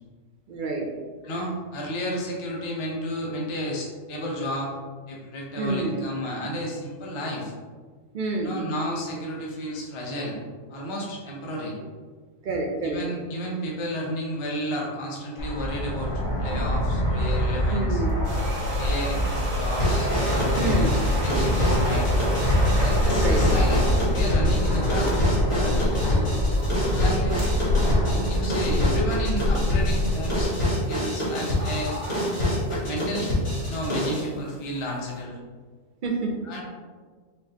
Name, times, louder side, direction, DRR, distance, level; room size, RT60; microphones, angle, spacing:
voice 1, 0.5-0.9 5.6-6.0 8.1-8.6 12.4-13.0 17.7-18.1 20.6-20.9 23.2-23.5 36.0-36.4, right 2 dB, 60° right, 1 dB, 0.5 m, -27 dB
voice 2, 1.2-4.7 5.1-7.5 8.4-10.4 10.7-11.7 12.8-18.0 18.8-22.1 22.8-26.3 26.9-27.4 27.8-32.0 32.7-33.3 33.7-35.4 36.4-36.6, equal, 35° left, -3 dB, 0.5 m, -32 dB
Fixed-wing aircraft airplane, 15.4-30.5, left 1 dB, 75° left, 1.5 m, -25 dB
sound 1, 18.1-24.1 24.8-35.2, right 1 dB, 90° right, 1.3 m, -36 dB
sound 2, 19.8-34.3, left 1 dB, 50° left, 1.7 m, -27 dB
5.4 x 2.5 x 2.8 m, 1.5 s
omnidirectional pair, 1.4 m